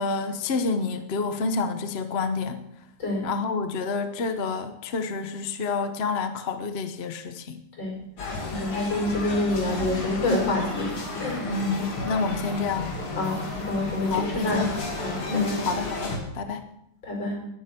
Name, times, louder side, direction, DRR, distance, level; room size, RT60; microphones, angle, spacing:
voice 1, 0.0-2.6 3.2-7.6 11.4-12.9 14.1-14.7 15.3-16.6, left 4 dB, 45° left, 8 dB, 0.8 m, -28 dB
sound 1, 8.2-16.2, left 2 dB, 80° left, 3.4 m, -32 dB
voice 2, 8.5-11.4 13.2-13.4 13.7-15.6 17.0-17.4, left 2 dB, 60° left, 1 dB, 5.8 m, -27 dB
20.5 x 9.6 x 4.5 m, 0.76 s
omnidirectional pair, 2.3 m